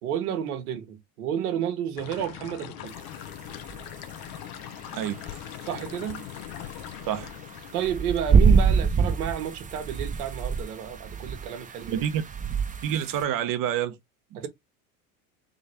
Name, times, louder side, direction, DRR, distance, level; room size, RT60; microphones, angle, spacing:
voice 1, 0.0-2.9 5.6-6.2 7.7-12.0 14.3-14.5, right 9 dB, 80° right, 1.5 m, -31 dB
sound 1, 2.0-8.0, left 12 dB, 55° left, 0.9 m, -41 dB
sound 2, 3.0-13.2, right 5 dB, 15° right, 1.0 m, -26 dB
voice 2, 11.8-12.2 12.8-14.0 14.3-14.5, right 10 dB, 45° right, 1.1 m, -28 dB
3.7 x 3.2 x 4.2 m
hypercardioid pair, 90°, 44 cm